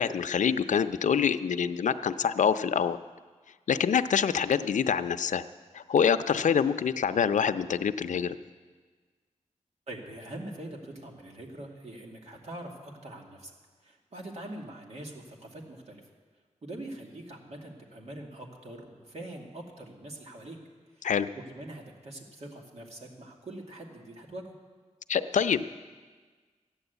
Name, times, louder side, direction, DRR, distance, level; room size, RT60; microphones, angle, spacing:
voice 1, 0.0-3.0 3.7-5.4 5.7-8.4 21.0-21.3 25.1-25.6, left 7 dB, 85° left, 11 dB, 0.5 m, -26 dB
voice 2, 9.9-13.5 13.8-16.0 16.6-20.6 20.9-21.1 21.5-24.5, right 1 dB, 60° right, 0 dB, 2.2 m, -43 dB
14.0 x 9.8 x 8.1 m, 1.4 s
wide cardioid pair, 110°, 12 cm